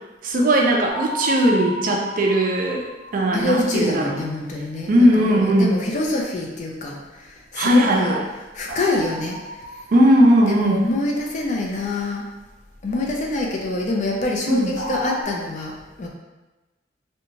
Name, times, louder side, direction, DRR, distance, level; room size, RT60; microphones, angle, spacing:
voice 1, 0.2-4.2 4.9-5.8 7.5-8.2 9.9-10.8 14.5-14.7, right 1 dB, 50° right, 0 dB, 0.4 m, -18 dB
sound 1, 0.9-3.8 8.7-10.9 14.8-15.2, equal, 65° left, 0.8 m, -33 dB
voice 2, 3.3-7.0 7.5-8.2 8.5-9.4 10.5-12.3 12.8-16.1, left 2 dB, 40° left, -1 dB, 0.4 m, -25 dB
2.8 x 2.2 x 2.7 m, 1.1 s
head